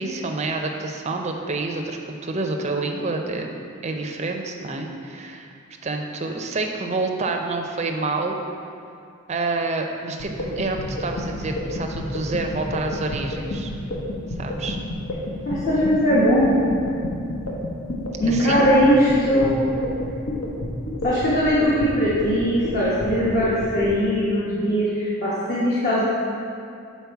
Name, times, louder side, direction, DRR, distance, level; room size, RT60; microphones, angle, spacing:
voice 1, 0.0-5.5 5.8-8.4 9.3-13.7 14.4-14.8 18.3-18.7, right 3 dB, 30° right, 3 dB, 0.5 m, -28 dB
sound 1, 10.2-23.9, left 1 dB, 70° left, 1.0 m, -29 dB
voice 2, 15.4-16.7 18.2-19.7 21.0-26.1, equal, 40° left, -8 dB, 1.0 m, -20 dB
7.0 x 4.3 x 4.6 m, 2.4 s
head